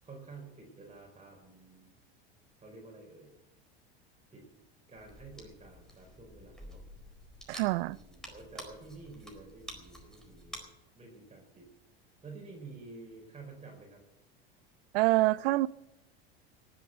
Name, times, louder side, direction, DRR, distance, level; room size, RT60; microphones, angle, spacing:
voice 1, 0.0-1.9 2.6-3.3 4.3-4.4 4.9-6.8 7.9-10.7 11.0-11.7 12.2-14.0, right 3 dB, 20° right, 4.6 m, -50 dB
sound 1, 5.0-10.6, equal, ahead, 4.3 m, -50 dB
voice 2, 7.5-8.0 14.9-15.7, right 19 dB, 70° right, 0.5 m, -26 dB
18.5 x 8.4 x 8.0 m
hypercardioid pair, 90°, 31 cm